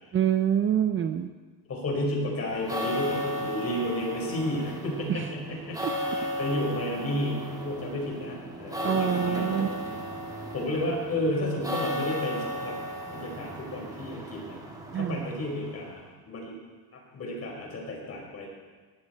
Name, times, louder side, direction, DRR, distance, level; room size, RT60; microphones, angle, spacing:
voice 1, 0.1-1.3 5.1-5.2 5.8-5.9 8.8-9.7 14.9-15.3, right 9 dB, 30° right, 8 dB, 0.6 m, -26 dB
voice 2, 1.7-9.7 10.5-12.8 13.1-14.6 14.9-16.6 16.9-18.5, left 1 dB, 35° left, -1 dB, 5.1 m, -32 dB
sound 1, 2.4-16.0, equal, 10° right, 2.4 m, -35 dB
18.0 x 12.0 x 4.5 m, 1.4 s
cardioid pair, 125°, 42 cm